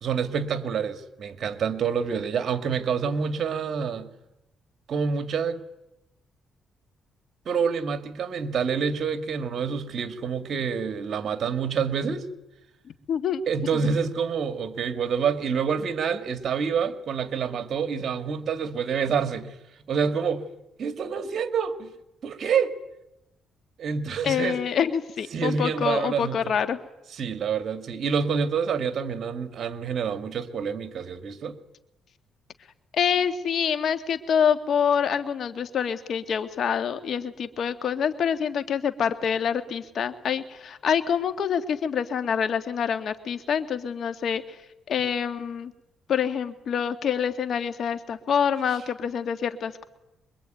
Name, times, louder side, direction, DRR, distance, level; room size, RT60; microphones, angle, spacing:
voice 1, 0.0-4.1 4.9-5.6 7.5-12.3 13.5-19.6 19.9-20.5 20.8-21.9 22.2-22.8 23.8-24.6 25.3-26.5 27.1-31.6, right 6 dB, 55° right, 10 dB, 2.2 m, -27 dB
voice 2, 13.1-13.4 13.7-13.9 24.2-26.8 32.9-44.4 44.9-45.7 46.1-49.8, left 7 dB, 60° left, 10 dB, 2.1 m, -26 dB
25.0 x 22.5 x 9.3 m, 0.92 s
cardioid pair, 90°, 0 cm